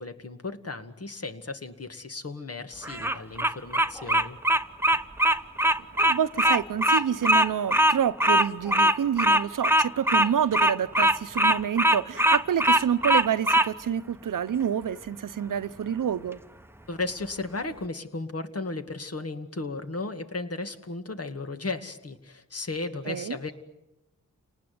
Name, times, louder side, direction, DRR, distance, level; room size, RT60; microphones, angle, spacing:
voice 1, 0.0-4.4 16.9-23.5, left 3 dB, 50° left, 2.2 m, -35 dB
Bird vocalization bird call bird song, 2.8-13.7, right 1 dB, 5° right, 1.0 m, -21 dB
voice 2, 6.0-16.4 23.1-23.4, right 8 dB, 85° right, 0.9 m, -28 dB
29.5 x 19.5 x 9.5 m
cardioid pair, 70°, 31 cm